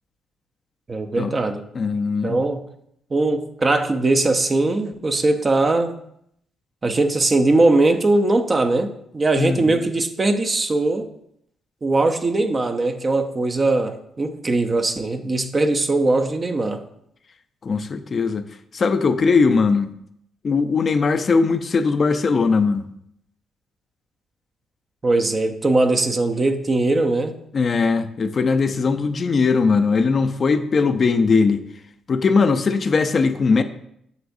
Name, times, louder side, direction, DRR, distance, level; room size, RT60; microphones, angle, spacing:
voice 1, 0.9-1.6 2.2-2.7 3.1-6.0 6.8-11.1 11.8-16.8 25.0-27.4, right 2 dB, 30° right, 0.7 m, -20 dB
voice 2, 1.7-2.4 9.4-9.6 17.6-18.4 18.7-19.9 20.4-22.9 27.5-31.6 32.1-33.6, left 4 dB, 40° left, 0.5 m, -19 dB
8.1 x 6.9 x 2.7 m
cardioid pair, 90°, 0 cm